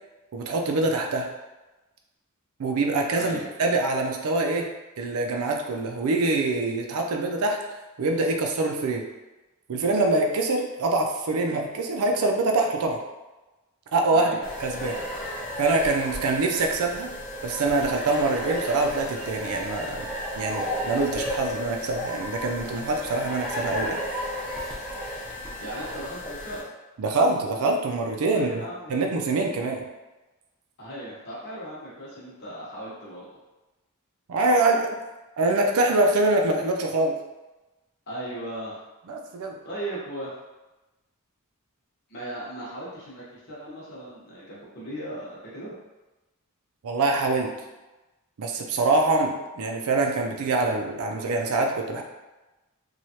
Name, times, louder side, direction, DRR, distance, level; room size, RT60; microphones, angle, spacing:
voice 1, 0.3-1.3 2.6-4.7 5.0-7.6 8.0-9.0 9.7-13.0 13.9-14.3 14.6-15.0 15.6-17.1 17.4-20.1 20.4-24.3 27.0-28.6 28.9-29.9 34.3-34.9 35.4-37.1 39.1-39.6 46.8-47.5 48.4-52.0, right 2 dB, 70° right, 2 dB, 0.4 m, -24 dB
voice 2, 3.1-3.5 14.1-14.4 25.6-26.6 28.3-29.1 30.8-33.3 38.1-38.8 39.6-40.3 42.1-45.7, right 1 dB, 50° left, -8 dB, 0.9 m, -37 dB
sound 1, 14.4-26.6, equal, 5° left, 0.6 m, -33 dB
3.1 x 2.3 x 2.8 m, 1.1 s
head